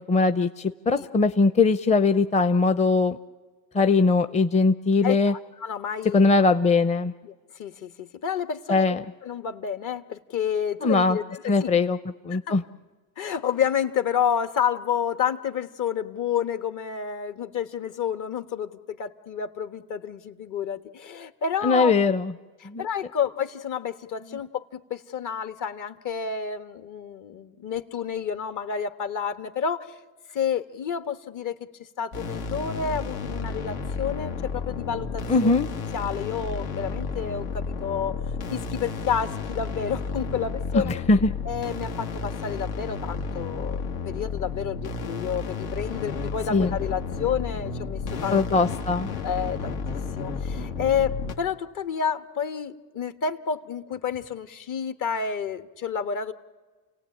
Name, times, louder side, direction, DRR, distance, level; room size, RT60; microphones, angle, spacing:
voice 1, 0.1-3.2 3.7-5.3 6.1-7.1 8.7-9.0 10.8-11.2 11.5-12.0 12.2-12.6 21.6-22.3 22.6-22.9 35.3-35.7 40.8-41.3 46.5-46.7 48.3-49.1, left 3 dB, 15° left, 10 dB, 0.7 m, -21 dB
voice 2, 5.0-6.3 7.2-7.3 7.6-8.9 9.2-11.7 12.3-12.6 13.2-21.9 22.6-29.9 30.3-31.5 31.8-35.5 35.9-38.1 38.5-40.9 41.4-48.5 49.2-49.8 50.2-56.3, left 7 dB, 50° left, 10 dB, 1.5 m, -30 dB
sound 1, 32.1-51.3, left 4 dB, 80° left, 2.1 m, -32 dB
29.5 x 18.0 x 8.7 m, 1.3 s
supercardioid pair, 85°, 39 cm